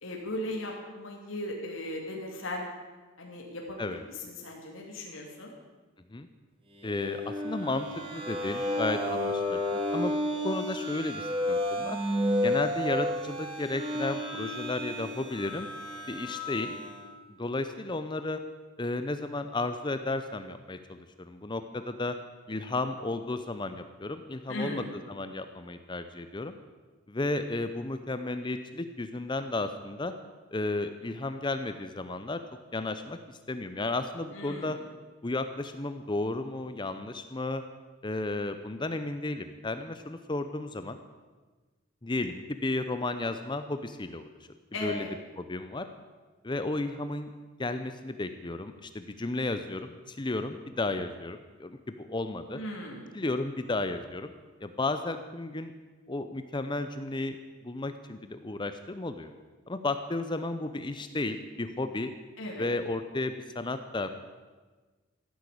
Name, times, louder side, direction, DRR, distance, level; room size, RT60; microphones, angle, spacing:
voice 1, 0.0-2.7 3.2-5.5 24.5-24.9 34.3-34.8 44.7-45.1 52.5-53.1 62.4-62.7, left 1 dB, 90° left, 0 dB, 2.8 m, -37 dB
voice 2, 6.8-10.1 10.4-12.0 12.4-15.7 16.1-16.7 17.3-18.4 18.8-22.2 22.5-26.5 27.1-30.1 30.5-32.4 32.7-34.8 35.2-37.6 38.0-41.0 42.0-44.3 44.8-45.1 45.4-45.9 46.4-47.3 47.6-52.6 53.1-54.3 54.6-55.7 56.1-59.3 59.7-62.1 62.6-64.2, left 2 dB, 25° left, 9 dB, 0.7 m, -33 dB
sound 1, 6.8-17.1, left 1 dB, 30° right, 4.0 m, -32 dB
15.5 x 10.5 x 8.5 m, 1.3 s
head